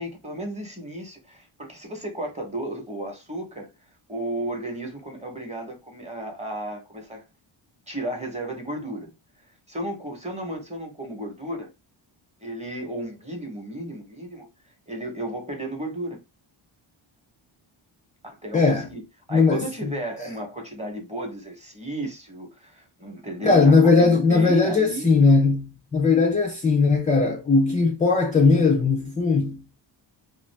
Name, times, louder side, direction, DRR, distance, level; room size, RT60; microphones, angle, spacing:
voice 1, 0.0-3.7 4.1-7.2 7.9-9.1 9.7-11.7 12.4-14.5 14.9-16.2 18.2-19.0 19.3-25.2, right 1 dB, 15° right, 0.8 m, -33 dB
voice 2, 18.5-18.9 19.3-19.6 20.2-20.3 23.4-29.6, left 4 dB, 20° left, 0.3 m, -19 dB
2.5 x 2.4 x 3.2 m
wide cardioid pair, 150°, 48 cm